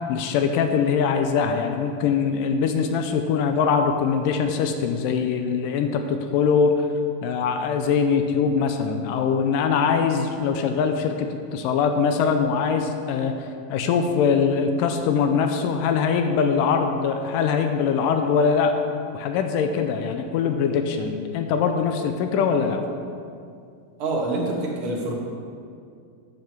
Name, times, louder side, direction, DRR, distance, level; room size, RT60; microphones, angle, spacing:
voice 1, 0.1-6.8 7.2-18.8 19.1-22.8, left 6 dB, 80° left, 6 dB, 2.0 m, -22 dB
voice 2, 24.0-25.2, right 2 dB, 50° right, -2 dB, 1.7 m, -26 dB
9.1 x 5.5 x 7.3 m, 2.4 s
omnidirectional pair, 4.3 m